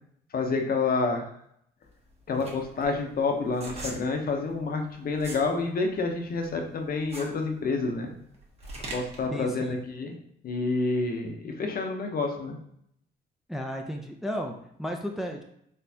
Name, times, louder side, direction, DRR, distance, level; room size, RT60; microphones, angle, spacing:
voice 1, 0.3-1.3 2.3-8.1 8.9-10.2 10.4-12.6, left 3 dB, 50° left, 3 dB, 0.7 m, -28 dB
sound 1, 1.8-5.5 5.9-9.3, right 2 dB, 30° right, 1.1 m, -41 dB
voice 2, 9.3-9.7 13.5-15.4, equal, ahead, 3 dB, 0.4 m, -34 dB
4.2 x 3.2 x 2.7 m, 0.71 s
cardioid pair, 90°, 20 cm